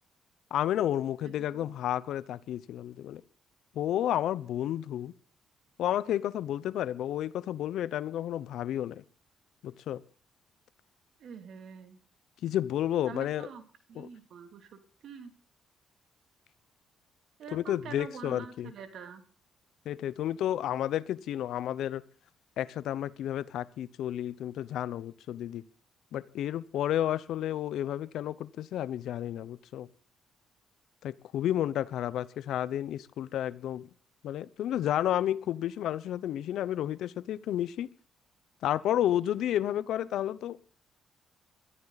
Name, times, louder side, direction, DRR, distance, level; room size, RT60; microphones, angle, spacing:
voice 1, 0.5-3.2 3.7-5.1 5.8-9.0 9.6-10.0 12.4-13.5 14.0-14.1 17.5-18.7 19.8-22.0 22.6-25.6 26.1-29.9 31.0-33.9 34.2-37.9 38.6-40.6, left 11 dB, 80° left, 0.8 m, -31 dB
voice 2, 1.2-1.7 11.2-12.0 13.1-13.6 13.9-15.3 17.4-19.2, right 6 dB, 70° right, 2.9 m, -45 dB
22.0 x 13.5 x 4.1 m
cardioid pair, 90°, 0 cm